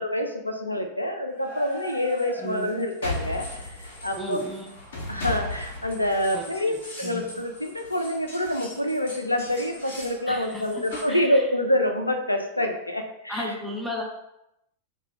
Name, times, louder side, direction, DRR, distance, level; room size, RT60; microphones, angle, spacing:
voice 1, 0.0-4.4 5.1-13.5, left 1 dB, 85° left, 5 dB, 0.3 m, -27 dB
sound 1, 1.3-11.0, left 2 dB, 60° left, 0.7 m, -38 dB
voice 2, 4.2-4.7 6.3-6.8 7.0-7.2 10.3-10.6 10.9-11.4 13.3-14.0, equal, ahead, -2 dB, 0.5 m, -34 dB
2.3 x 2.2 x 3.1 m, 0.84 s
figure-of-eight pair, 90°, 0 cm